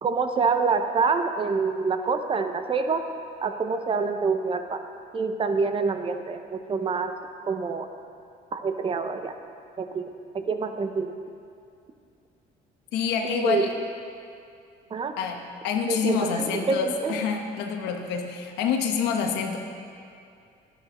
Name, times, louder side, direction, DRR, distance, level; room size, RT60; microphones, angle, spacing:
voice 1, 0.0-3.0 3.4-4.8 5.1-7.1 7.5-7.9 8.5-9.3 9.8-10.0 10.3-11.1 13.2-13.7 14.9-15.1 15.9-17.2, right 4 dB, 30° right, 7 dB, 0.7 m, -26 dB
voice 2, 12.9-13.7 15.2-19.6, left 6 dB, 90° left, 3 dB, 1.0 m, -27 dB
12.0 x 10.5 x 3.0 m, 2.4 s
cardioid pair, 110°, 17 cm